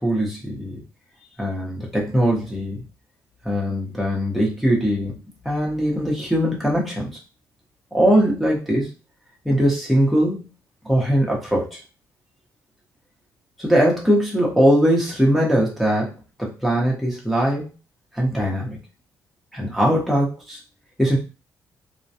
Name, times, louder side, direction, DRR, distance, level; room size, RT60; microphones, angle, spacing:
voice 1, 0.0-0.8 1.4-2.8 3.4-5.2 5.4-7.2 7.9-8.9 9.4-10.4 10.8-11.8 13.6-17.7 18.1-18.8 19.5-20.6 21.0-21.2, equal, ahead, -4 dB, 0.9 m, -21 dB
2.2 x 2.2 x 2.7 m, 0.30 s
cardioid pair, 110°, 7 cm